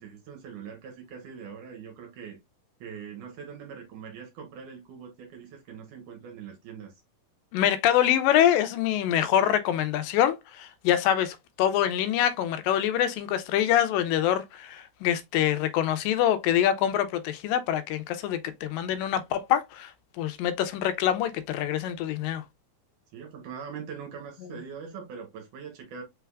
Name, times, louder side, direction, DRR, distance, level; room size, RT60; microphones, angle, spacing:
voice 1, 0.0-2.4 2.8-6.9 23.1-26.0, right 6 dB, 70° right, 2.3 m, -42 dB
voice 2, 7.5-19.9 20.2-22.4, left 10 dB, 90° left, 2.3 m, -25 dB
5.4 x 3.4 x 2.3 m
omnidirectional pair, 3.9 m